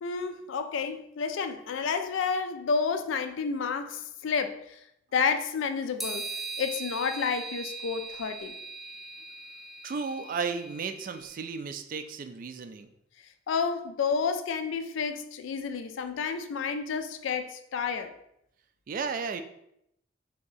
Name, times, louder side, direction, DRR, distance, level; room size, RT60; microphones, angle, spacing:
voice 1, 0.0-4.8 5.1-6.3 6.6-8.5 13.5-18.1, left 5 dB, 75° left, 0.4 m, -30 dB
sound 1, 6.0-11.3, right 3 dB, ahead, 0.6 m, -40 dB
voice 2, 9.8-12.9 18.9-19.4, right 5 dB, 45° right, 0.3 m, -34 dB
3.5 x 2.8 x 4.0 m
head